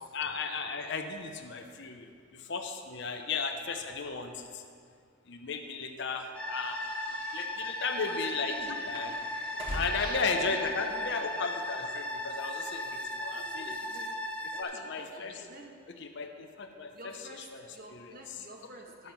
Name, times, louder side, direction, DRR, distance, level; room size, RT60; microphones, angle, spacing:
voice 1, 0.1-4.6 5.3-6.9 7.3-8.5 8.9-9.2 9.7-13.7 14.6-15.3 16.1-16.9 17.5-17.6 17.9-18.0, left 4 dB, 60° left, 4 dB, 0.7 m, -35 dB
sound 1, 6.3-14.6, left 1 dB, 5° left, 0.8 m, -37 dB
sound 2, 6.5-10.3, equal, 25° right, 1.4 m, -43 dB
voice 2, 8.0-8.8 9.6-11.2 13.4-14.1 14.5-15.9 16.9-19.1, right 2 dB, 45° right, 1 dB, 1.2 m, -49 dB
10.5 x 7.1 x 5.9 m, 2.3 s
head